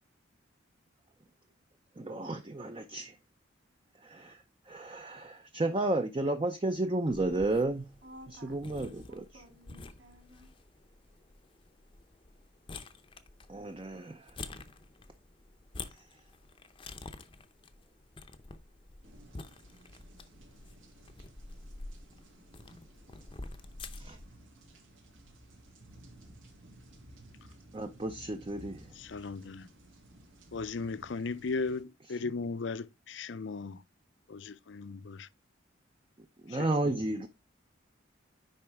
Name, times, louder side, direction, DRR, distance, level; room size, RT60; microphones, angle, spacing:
voice 1, 2.0-3.2 4.0-7.9 8.3-9.4 13.5-14.4 24.0-24.2 27.7-28.9 36.4-37.3, right 2 dB, 25° right, 0.5 m, -33 dB
sound 1, 7.1-24.3, left 3 dB, 25° left, 0.6 m, -49 dB
voice 2, 8.0-10.5, equal, 60° right, 2.6 m, -54 dB
sound 2, 19.0-31.8, right 1 dB, 80° right, 2.3 m, -56 dB
voice 3, 29.0-29.7 30.5-33.8 34.3-35.3 36.5-37.0, left 4 dB, 65° left, 0.5 m, -37 dB
10.0 x 4.0 x 3.4 m
head